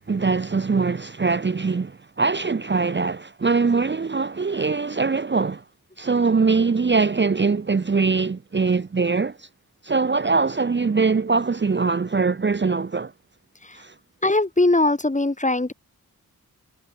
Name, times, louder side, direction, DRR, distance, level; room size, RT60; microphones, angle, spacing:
voice 1, 0.1-5.6 6.0-9.5 9.8-13.1 13.7-13.9, right 4 dB, 30° right, 0.9 m, -22 dB
voice 2, 14.2-15.7, left 2 dB, 20° left, 2.1 m, -20 dB
cardioid pair, 55°, 37 cm